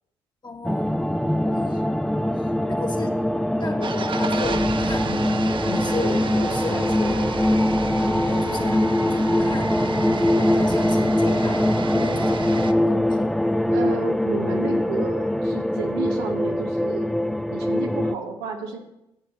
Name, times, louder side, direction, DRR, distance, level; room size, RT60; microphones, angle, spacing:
voice 1, 0.4-1.1 1.5-1.8 2.4-3.2 3.5-5.3 5.6-7.3 8.0-8.9 9.1-9.8 10.2-11.6 11.9-13.5, left 3 dB, 35° left, 2 dB, 1.8 m, -34 dB
sound 1, 0.6-18.2, left 1 dB, ahead, 0.4 m, -22 dB
sound 2, 3.8-12.7, right 5 dB, 40° right, 0.8 m, -32 dB
voice 2, 13.7-17.1 17.5-18.8, right 5 dB, 85° right, 2 dB, 1.0 m, -31 dB
9.9 x 8.5 x 4.1 m, 0.89 s
hypercardioid pair, 45°, 13 cm